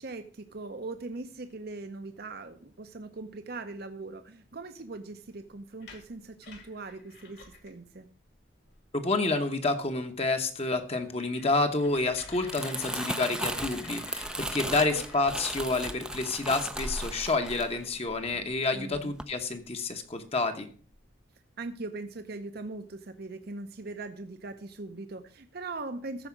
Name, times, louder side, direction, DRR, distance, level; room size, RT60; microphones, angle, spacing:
voice 1, 0.0-8.1 14.5-15.1 18.7-19.1 21.6-26.3, right 3 dB, 50° right, 8 dB, 0.7 m, -40 dB
sound 1, 5.7-7.8 8.3-8.4 8.6-9.1 9.6-9.7 10.1-10.2 10.5-10.6 10.9-16.6 18.0-18.1 18.4-19.7 20.3-20.4 20.7-21.2, left 5 dB, 60° left, 2.4 m, -50 dB
voice 2, 8.9-20.7, left 3 dB, 30° left, 6 dB, 1.0 m, -29 dB
Crumpling crinkling, 12.2-18.6 18.9-19.2, right 1 dB, 5° right, 0.5 m, -36 dB
14.5 x 4.9 x 6.1 m, 0.43 s
head